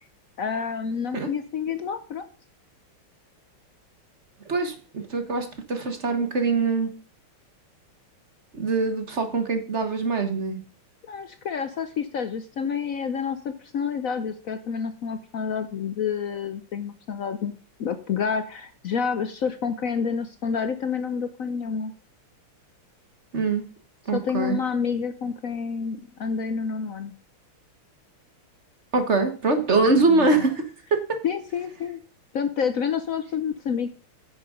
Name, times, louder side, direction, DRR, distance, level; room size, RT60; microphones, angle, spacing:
voice 1, 0.4-2.2 11.1-17.5 17.8-21.9 24.1-27.1 29.8-30.4 31.2-32.0 32.3-33.9, left 6 dB, 70° left, 10 dB, 0.8 m, -29 dB
voice 2, 4.5-6.9 8.5-10.6 23.3-23.6 24.1-24.6 28.9-30.6 30.9-31.2, right 3 dB, 35° right, 7 dB, 1.4 m, -23 dB
10.5 x 7.8 x 5.1 m, 0.40 s
omnidirectional pair, 2.3 m